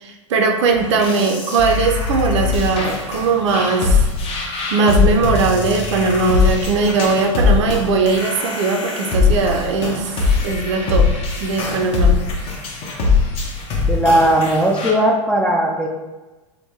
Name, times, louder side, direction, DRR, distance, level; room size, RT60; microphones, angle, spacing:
voice 1, 0.0-4.1 4.7-10.2 10.4-11.1 11.4-12.2, right 4 dB, 65° right, 4 dB, 0.5 m, -19 dB
sound 1, 0.7-14.9, left 4 dB, 35° left, 0.9 m, -21 dB
voice 2, 13.9-15.9, right 1 dB, 5° left, 0 dB, 0.4 m, -17 dB
3.6 x 2.2 x 3.1 m, 1.2 s
hypercardioid pair, 90°, 16 cm